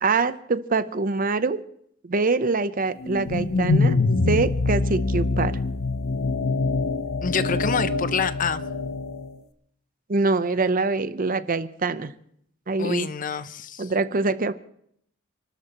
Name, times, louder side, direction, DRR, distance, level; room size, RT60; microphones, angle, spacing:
voice 1, 0.0-1.6 2.0-4.0 4.3-5.6 10.1-12.1 12.7-13.1 13.8-14.5, right 3 dB, 45° right, 13 dB, 0.7 m, -24 dB
sound 1, 3.0-9.3, left 3 dB, 80° left, 0.8 m, -24 dB
voice 2, 7.2-8.6 12.8-13.9, left 6 dB, 40° left, 14 dB, 0.6 m, -27 dB
29.5 x 13.0 x 3.0 m, 0.69 s
head